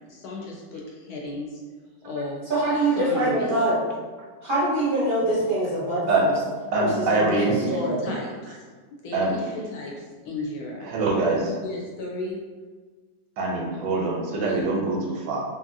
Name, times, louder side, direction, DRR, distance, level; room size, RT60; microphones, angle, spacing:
voice 1, 0.0-1.6 2.0-2.4 3.0-3.5 5.4-5.5 7.3-10.9 11.5-12.4 13.7-14.0 14.4-14.7, left 2 dB, 75° left, -2 dB, 1.0 m, -34 dB
voice 2, 2.5-3.8 4.4-6.3 6.7-8.0, right 1 dB, 45° right, -9 dB, 0.7 m, -24 dB
voice 3, 6.7-7.6 8.5-8.6 9.1-9.3 10.8-11.6 13.4-15.4, right 3 dB, 85° right, -1 dB, 1.2 m, -24 dB
2.7 x 2.7 x 2.6 m, 1.4 s
omnidirectional pair, 1.8 m